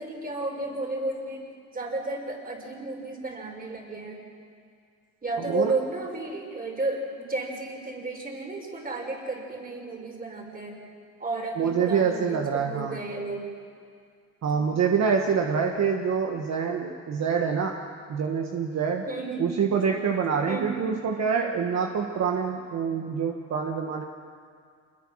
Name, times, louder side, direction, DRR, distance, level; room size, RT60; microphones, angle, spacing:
voice 1, 0.0-1.4 1.7-4.2 5.2-10.8 11.2-13.5 14.5-14.6 19.1-19.5 20.5-20.8, right 2 dB, 30° right, 1 dB, 5.2 m, -33 dB
voice 2, 11.6-13.0 14.4-17.7 18.1-19.0 19.4-24.1, right 6 dB, 60° right, 2 dB, 1.6 m, -26 dB
26.0 x 21.5 x 6.4 m, 2.2 s
cardioid pair, 90°, 30 cm